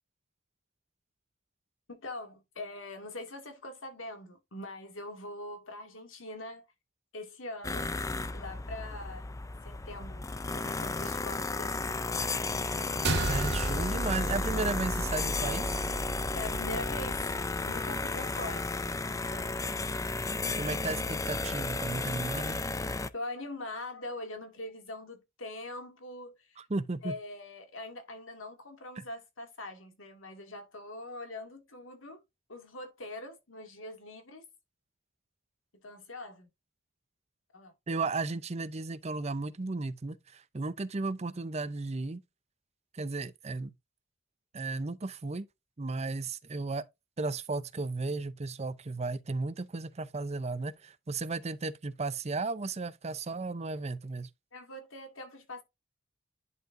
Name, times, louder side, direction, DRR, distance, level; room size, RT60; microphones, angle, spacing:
voice 1, 1.9-6.6 7.1-7.9 8.3-9.3 9.6-12.0 16.3-17.4 17.6-18.7 19.2-19.7 23.1-26.6 27.0-32.2 32.5-34.4 35.8-36.5 37.5-37.7 54.5-55.6, left 2 dB, 80° left, 2.2 m, -43 dB
sound 1, 7.6-23.1, left 3 dB, 15° left, 0.5 m, -33 dB
sound 2, 13.0-17.6, right 2 dB, 60° right, 1.9 m, -34 dB
voice 2, 13.3-15.8 20.6-22.6 26.6-27.1 29.0-29.1 37.9-42.2 42.9-43.7 44.5-45.5 45.8-46.8 47.2-54.3, right 3 dB, 35° right, 0.6 m, -34 dB
11.0 x 4.5 x 2.6 m
head